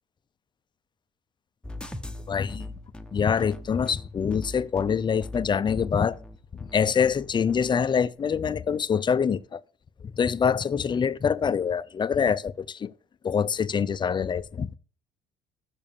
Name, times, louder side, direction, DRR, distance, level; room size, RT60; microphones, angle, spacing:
sound 1, 1.6-7.7, left 1 dB, 5° left, 0.8 m, -41 dB
voice 1, 2.3-2.7 3.1-6.2 6.5-9.6 10.0-12.9 13.2-14.7, left 6 dB, 25° left, 0.5 m, -25 dB
sound 2, 2.4-9.3, right 3 dB, 70° right, 2.4 m, -64 dB
7.0 x 6.8 x 7.2 m
cardioid pair, 110°, 17 cm